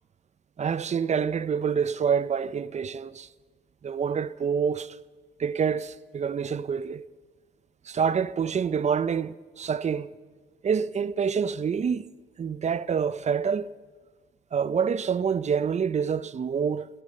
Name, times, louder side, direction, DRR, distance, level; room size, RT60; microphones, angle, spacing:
voice 1, 0.6-3.3 3.8-5.0 5.4-7.0 7.8-10.1 10.6-12.1 12.4-13.7 14.5-16.9, right 6 dB, 35° right, 0.6 m, -27 dB
15.0 x 13.5 x 6.5 m
cardioid pair, 90°, 20 cm